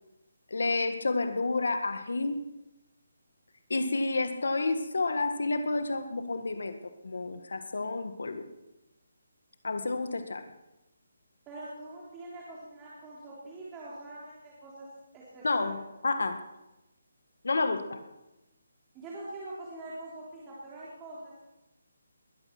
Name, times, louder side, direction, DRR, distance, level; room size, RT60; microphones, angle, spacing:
voice 1, 0.5-2.4 3.7-6.8 7.0-8.5 9.6-10.4 15.4-16.4 17.4-18.0, left 3 dB, 80° left, 8 dB, 1.7 m, -30 dB
voice 2, 11.5-14.9 15.1-15.8 18.9-21.4, right 2 dB, 15° right, -7 dB, 3.6 m, -44 dB
21.5 x 10.5 x 6.0 m, 0.98 s
hypercardioid pair, 165°, 0 cm